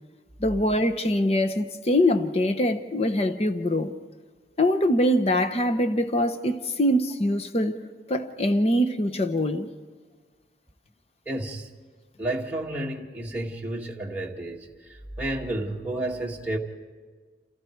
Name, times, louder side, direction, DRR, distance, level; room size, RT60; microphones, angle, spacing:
voice 1, 0.4-3.9 4.6-7.8 8.1-9.7, left 1 dB, 35° left, 1.0 m, -23 dB
voice 2, 11.3-11.7 12.2-16.6, right 1 dB, 10° right, 1.9 m, -31 dB
28.5 x 28.5 x 4.7 m
head